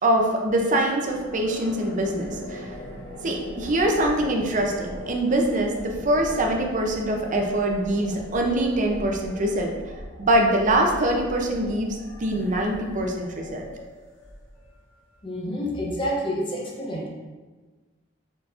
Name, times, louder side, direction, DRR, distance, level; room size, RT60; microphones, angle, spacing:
voice 1, 0.0-2.7 3.2-9.7 10.2-11.9 12.2-13.6, right 1 dB, 40° right, 1 dB, 0.5 m, -23 dB
sound 1, 0.6-14.8, left 1 dB, 85° left, 1.0 m, -40 dB
voice 2, 15.2-17.1, equal, 25° left, -2 dB, 0.7 m, -28 dB
4.7 x 3.9 x 2.5 m, 1.3 s
head